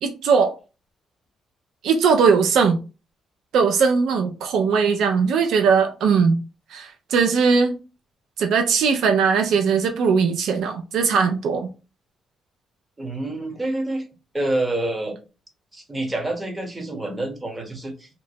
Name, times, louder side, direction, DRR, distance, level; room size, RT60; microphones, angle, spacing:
voice 1, 0.0-0.5 1.8-2.8 3.5-6.4 6.7-7.7 8.4-11.7, right 5 dB, 80° right, 0.4 m, -19 dB
voice 2, 13.0-14.0 14.3-15.2 15.7-18.1, right 1 dB, 20° right, 1.0 m, -27 dB
2.9 x 2.1 x 2.7 m
cardioid pair, 90°, 0 cm